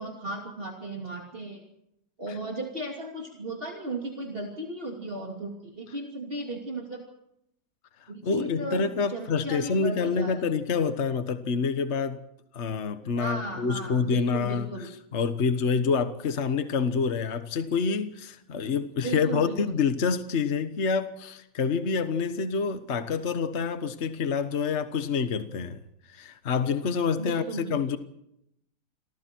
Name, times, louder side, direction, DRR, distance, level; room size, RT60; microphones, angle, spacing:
voice 1, 0.0-1.6 2.2-7.0 8.1-10.3 13.1-14.9 19.0-19.7 27.2-27.6, right 2 dB, 35° right, 3.1 m, -35 dB
voice 2, 8.0-12.2 12.5-25.8 26.1-28.0, left 5 dB, 45° left, 1.5 m, -27 dB
29.0 x 23.0 x 4.6 m
omnidirectional pair, 1.7 m